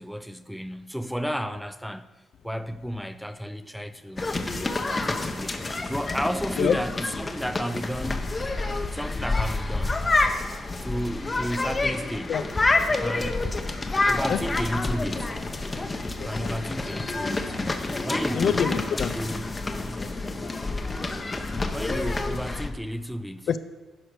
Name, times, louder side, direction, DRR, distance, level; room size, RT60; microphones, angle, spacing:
voice 1, 0.0-2.1 2.4-4.4 4.8-8.2 8.9-10.0 10.8-12.4 12.9-13.5 14.0-15.4 15.9-17.6 18.0-18.7 19.2-19.5 21.7-23.5, equal, ahead, 0.5 m, -33 dB
sound 1, 4.2-22.7, left 2 dB, 25° left, 0.9 m, -28 dB
voice 2, 16.0-16.5 18.3-19.1 20.0-20.5 21.9-22.1 23.5-23.6, left 7 dB, 65° left, 0.5 m, -28 dB
10.5 x 5.0 x 6.4 m
cardioid pair, 90°, 0 cm